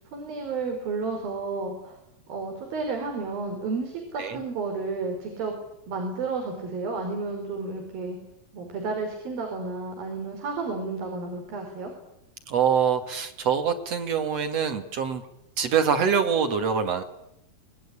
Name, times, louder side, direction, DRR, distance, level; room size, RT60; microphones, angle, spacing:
voice 1, 0.1-2.0 2.3-5.5 5.9-8.2 8.5-11.9, right 4 dB, 80° right, 4 dB, 5.5 m, -31 dB
voice 2, 12.5-15.3 15.6-17.0, right 7 dB, 50° right, 7 dB, 2.6 m, -24 dB
24.0 x 20.0 x 9.8 m, 0.82 s
omnidirectional pair, 4.1 m